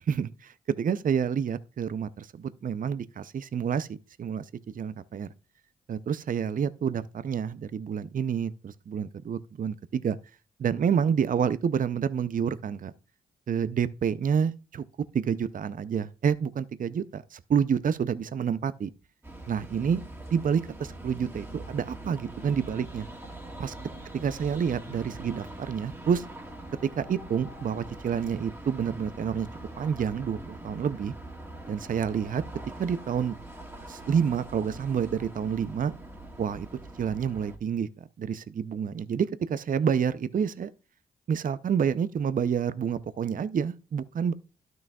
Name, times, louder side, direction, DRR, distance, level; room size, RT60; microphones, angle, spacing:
voice 1, 0.1-4.4 4.7-5.3 5.9-10.2 10.6-12.9 13.5-14.8 15.1-18.9 19.5-20.0 20.3-23.1 23.6-23.7 24.1-26.2 26.8-29.5 29.8-31.1 31.7-32.4 32.8-33.3 33.9-35.9 36.4-36.7 37.0-37.9 38.2-40.7 41.3-44.3, right 7 dB, 50° right, 0.5 m, -28 dB
sound 1, 19.2-37.6, right 1 dB, 15° right, 1.9 m, -43 dB
12.0 x 6.2 x 2.3 m
supercardioid pair, 40°, 19 cm